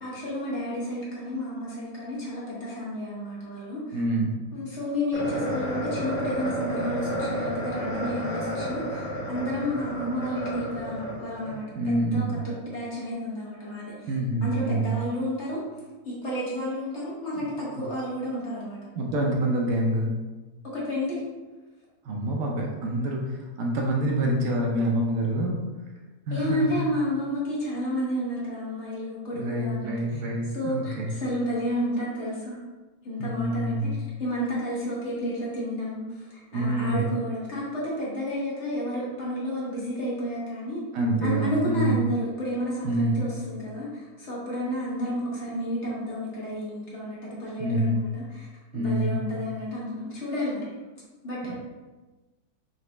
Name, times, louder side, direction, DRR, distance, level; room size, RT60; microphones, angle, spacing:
voice 1, 0.0-4.0 4.5-14.1 14.4-15.6 16.0-18.8 20.7-21.2 26.3-30.2 30.5-32.6 33.0-33.9 34.2-40.8 41.2-48.5 48.7-50.7 51.2-51.5, equal, 50° left, -6 dB, 1.4 m, -31 dB
voice 2, 3.9-4.4 11.7-12.4 14.1-15.0 19.0-20.1 22.0-25.6 26.3-26.8 29.3-31.1 33.2-34.0 36.5-37.1 40.9-42.1 42.8-43.2 47.6-48.0 48.7-49.2, right 1 dB, 70° right, -1 dB, 1.0 m, -26 dB
sound 1, 5.1-11.5, equal, 15° right, 1.4 m, -31 dB
3.9 x 3.3 x 3.2 m, 1.2 s
omnidirectional pair, 1.6 m